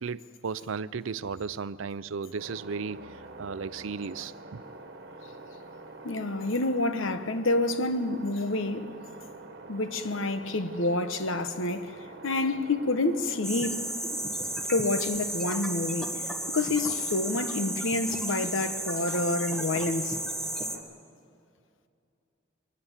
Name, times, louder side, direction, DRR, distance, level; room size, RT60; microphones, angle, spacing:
voice 1, 0.0-3.1 3.4-4.6, right 5 dB, 80° right, 0.5 m, -35 dB
sound 1, 2.4-20.8, right 3 dB, 55° right, 1.6 m, -46 dB
voice 2, 6.0-8.9 9.7-11.9 12.2-13.9 14.7-20.2, left 2 dB, 80° left, 1.2 m, -28 dB
sound 2, 13.4-20.8, right 1 dB, ahead, 1.4 m, -33 dB
23.5 x 19.5 x 7.3 m
head